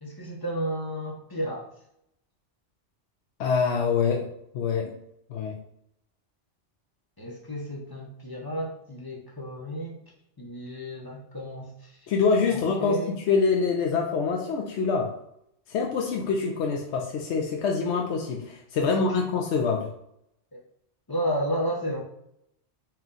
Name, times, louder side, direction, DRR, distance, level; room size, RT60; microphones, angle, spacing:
voice 1, 0.0-1.7 7.2-10.0 10.4-12.1 12.5-13.2 18.8-19.2 20.5-20.6 21.1-22.0, equal, 25° left, -2 dB, 0.7 m, -32 dB
voice 2, 3.4-4.3 4.5-4.9 5.3-5.6 12.1-13.0 13.3-15.1 15.7-19.9, left 5 dB, 70° left, 0 dB, 0.8 m, -25 dB
4.4 x 2.2 x 3.8 m, 0.74 s
omnidirectional pair, 1.2 m